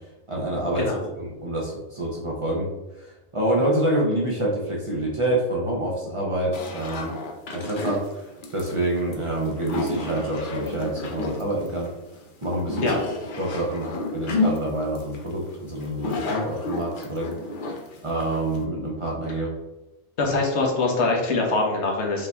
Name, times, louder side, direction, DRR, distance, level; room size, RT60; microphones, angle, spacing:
voice 1, 0.3-0.9 1.2-2.7 3.0-7.2 7.5-11.9 12.4-12.9 13.4-17.3 18.0-19.5, right 1 dB, 30° right, -3 dB, 0.8 m, -27 dB
sound 1, 6.5-18.6, left 3 dB, 50° left, 0.8 m, -31 dB
voice 2, 20.2-22.3, left 3 dB, 75° left, 0 dB, 1.2 m, -23 dB
5.1 x 2.8 x 3.4 m, 1.0 s
omnidirectional pair, 1.2 m